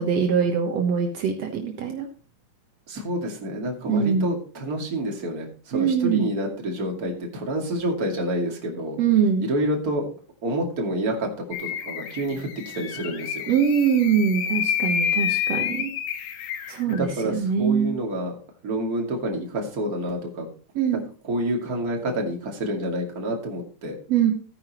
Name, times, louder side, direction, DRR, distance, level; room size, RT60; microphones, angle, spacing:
voice 1, 0.0-2.1 3.9-4.3 5.7-6.3 9.0-9.4 13.5-15.9 16.7-17.9 20.7-21.0 24.1-24.3, right 7 dB, 80° right, 3 dB, 1.4 m, -22 dB
voice 2, 2.9-9.0 9.4-10.1 10.4-11.3 11.6-12.5 12.7-13.5 16.9-18.3 18.6-20.5 21.2-24.0, right 1 dB, 30° right, 0 dB, 1.9 m, -28 dB
sound 1, 11.5-17.0, left 9 dB, 70° left, 2.7 m, -29 dB
15.0 x 9.9 x 3.0 m, 0.39 s
omnidirectional pair, 4.8 m